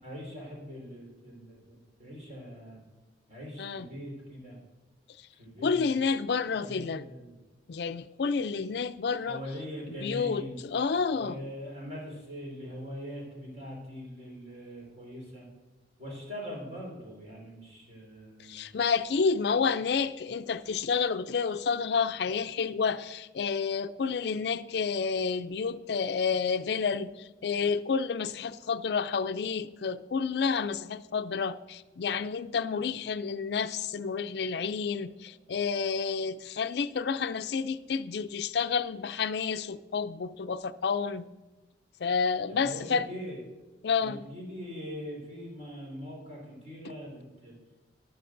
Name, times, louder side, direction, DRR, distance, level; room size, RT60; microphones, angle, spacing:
voice 1, 0.0-2.8 3.3-4.6 5.4-6.0 6.5-7.4 9.2-10.6 11.1-15.5 16.0-18.7 42.5-43.4 44.0-47.6, equal, 40° right, 4.1 m, -42 dB
voice 2, 5.6-7.1 7.7-9.4 9.9-11.4 18.4-41.3 42.0-43.1 43.8-44.2, left 5 dB, 60° left, 0.4 m, -30 dB
14.5 x 11.0 x 2.6 m
head